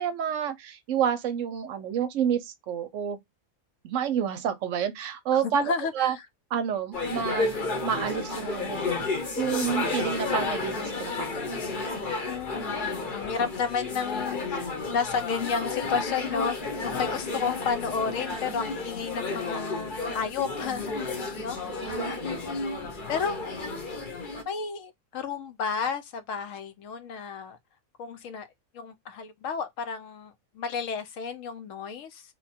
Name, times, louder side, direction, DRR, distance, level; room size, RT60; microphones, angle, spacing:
voice 1, 0.0-3.2 3.8-6.1 6.5-7.5 7.8-8.8 9.4-11.3 21.8-22.1, right 8 dB, 70° right, 0.9 m, -29 dB
voice 2, 5.3-6.2 12.2-16.6 16.8-21.6 22.3-22.5 23.1-23.4 24.5-27.6 28.0-28.5 28.7-32.2, left 6 dB, 70° left, 0.9 m, -32 dB
sound 1, 6.9-24.4, left 3 dB, 45° left, 0.8 m, -32 dB
2.9 x 2.2 x 4.1 m
omnidirectional pair, 1.5 m